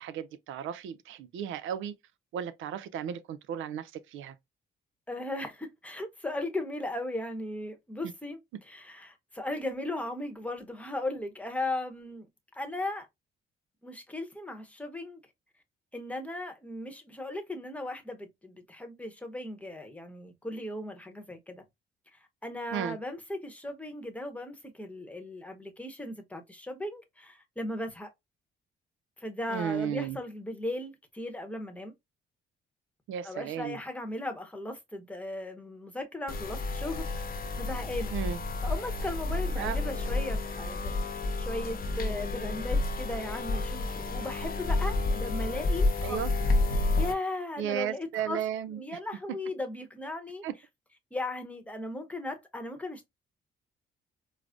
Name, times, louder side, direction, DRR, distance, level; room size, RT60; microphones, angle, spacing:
voice 1, 0.0-1.9 2.3-4.3 22.7-23.0 29.5-30.2 33.1-33.8 38.1-38.4 39.6-39.8 46.0-46.3 47.6-48.8 50.4-50.5, right 9 dB, 80° right, 0.5 m, -34 dB
voice 2, 5.1-12.3 12.5-13.1 13.8-15.2 15.9-21.6 22.4-28.1 29.2-31.9 33.2-38.1 38.6-46.5 46.8-48.4 48.7-50.4 51.1-53.0, left 1 dB, 5° left, 0.9 m, -37 dB
sound 1, 36.3-47.1, left 2 dB, 50° left, 0.8 m, -30 dB
4.7 x 2.0 x 2.4 m
cardioid pair, 90°, 20 cm